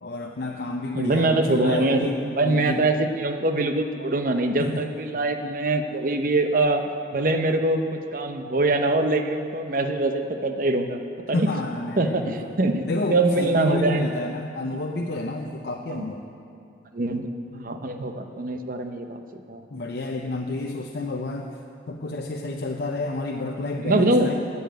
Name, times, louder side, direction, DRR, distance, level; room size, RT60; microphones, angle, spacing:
voice 1, 0.0-2.8 4.6-4.9 11.3-12.5 12.9-16.3 19.7-21.5 21.9-24.3, left 2 dB, 60° left, 0 dB, 0.6 m, -30 dB
voice 2, 0.9-6.8 7.1-7.8 8.1-11.0 11.3-11.5 12.0-14.1 14.7-14.8 15.9-16.1 16.9-19.2 19.5-19.7 23.8-24.3, right 2 dB, 50° right, 6 dB, 0.7 m, -23 dB
10.0 x 7.1 x 9.1 m, 2.5 s
head